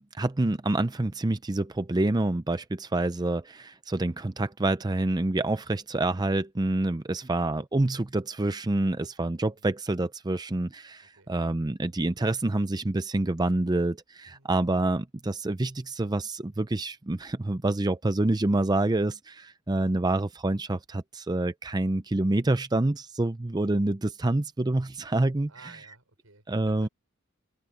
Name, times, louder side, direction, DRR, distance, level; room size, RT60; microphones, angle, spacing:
voice 1, 0.0-25.5 26.5-26.9, right 2 dB, 20° right, 0.5 m, -27 dB
voice 2, 11.0-11.3 14.2-14.5 25.5-26.9, right 4 dB, 85° right, 5.2 m, -55 dB
head